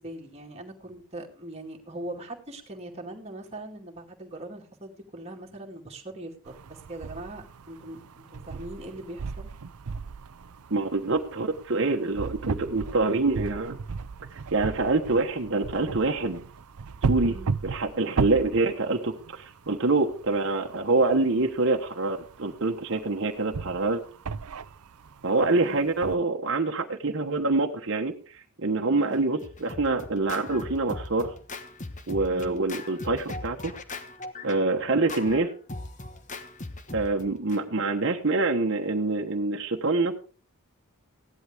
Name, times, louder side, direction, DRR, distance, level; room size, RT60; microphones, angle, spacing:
voice 1, 0.0-9.5 17.2-17.5 25.6-25.9 28.9-29.2 32.3-32.6 36.9-37.2, right 1 dB, 30° right, 0 dB, 2.3 m, -41 dB
sound 1, 6.5-26.2, right 5 dB, 85° right, 0.5 m, -36 dB
voice 2, 10.7-13.8 14.3-16.4 17.1-17.3 17.6-24.0 25.2-28.1 28.6-31.3 32.1-33.7 34.4-35.5 36.9-40.1, right 3 dB, 55° right, 2 dB, 1.2 m, -26 dB
Scratching (performance technique), 29.1-37.6, left 2 dB, 35° left, 1.2 m, -40 dB
16.0 x 11.0 x 3.6 m, 0.39 s
head